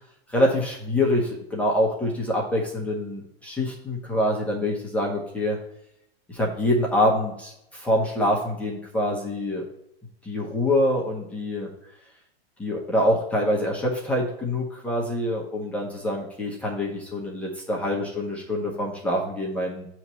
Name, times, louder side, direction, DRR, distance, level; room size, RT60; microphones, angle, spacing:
voice 1, 0.3-5.6 6.3-9.6 10.2-11.7 12.6-19.9, left 1 dB, 5° left, -4 dB, 0.7 m, -25 dB
7.3 x 3.1 x 5.5 m, 0.79 s
supercardioid pair, 160°, 31 cm